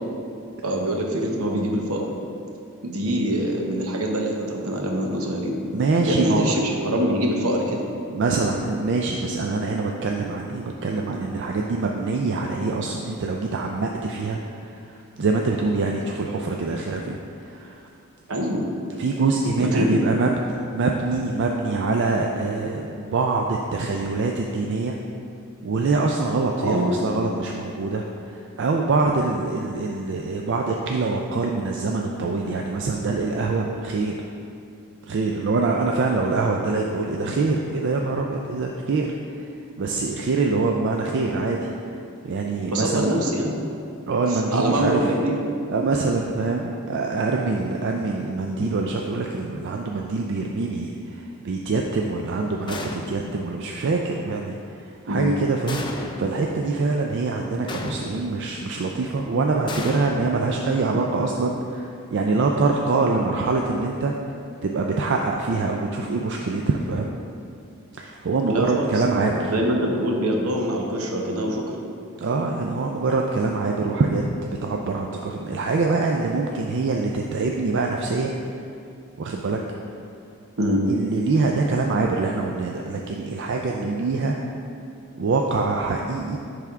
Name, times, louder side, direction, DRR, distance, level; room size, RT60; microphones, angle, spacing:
voice 1, 0.6-2.1 2.8-5.6 6.1-6.5 6.8-7.8 18.3-18.7 19.6-20.0 26.6-26.9 42.7-43.5 44.3-45.4 55.1-55.3 68.5-68.9 69.5-71.6 80.6-80.8, equal, 70° right, 0 dB, 0.9 m, -24 dB
voice 2, 5.7-6.5 8.1-17.8 18.9-20.4 20.7-24.9 25.6-34.3 35.0-41.7 42.2-43.1 44.1-45.1 45.7-64.3 64.6-67.1 68.0-69.5 72.2-78.4 79.2-79.6 80.9-84.4 85.2-86.4, right 3 dB, 55° right, 1 dB, 0.4 m, -24 dB
sound 1, 52.7-53.4 55.7-56.5 57.7-58.5 59.7-60.9, left 2 dB, 20° left, 0.4 m, -33 dB
10.5 x 3.5 x 3.6 m, 2.5 s
head